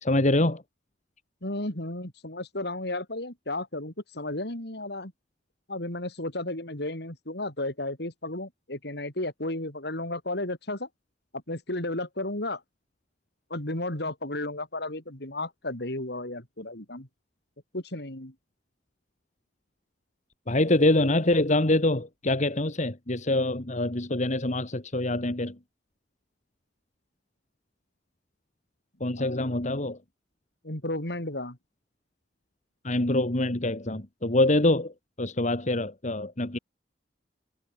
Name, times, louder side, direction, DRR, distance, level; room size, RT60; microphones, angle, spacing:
voice 1, 0.0-0.6 20.5-25.6 29.0-30.0 32.8-36.6, left 2 dB, 45° left, 2.1 m, -25 dB
voice 2, 1.4-5.1 5.7-10.9 11.5-12.6 13.5-17.1 17.7-18.3 29.2-29.6 30.6-31.6, left 2 dB, 65° left, 5.0 m, -33 dB
head